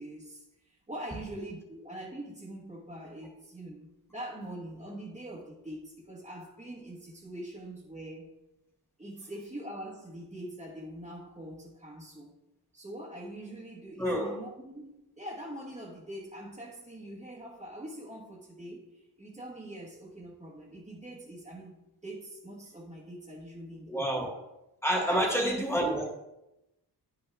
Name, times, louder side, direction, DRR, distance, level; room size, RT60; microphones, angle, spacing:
voice 1, 0.0-8.3 9.0-12.3 12.7-24.3 24.9-25.6, right 1 dB, 15° right, -6 dB, 1.5 m, -43 dB
voice 2, 14.0-14.4 23.9-24.4 24.8-26.1, right 1 dB, 5° left, 0 dB, 2.1 m, -28 dB
9.9 x 5.8 x 3.6 m, 0.91 s
wide cardioid pair, 95°, 41 cm